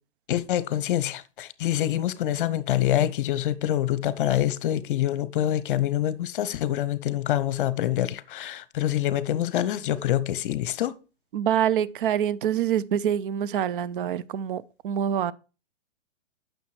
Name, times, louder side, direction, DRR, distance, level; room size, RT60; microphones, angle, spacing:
voice 1, 0.3-10.9, left 12 dB, 45° left, 0.8 m, -26 dB
voice 2, 11.3-15.3, right 9 dB, 50° right, 0.6 m, -26 dB
9.3 x 6.4 x 3.2 m
hypercardioid pair, 125°, 35 cm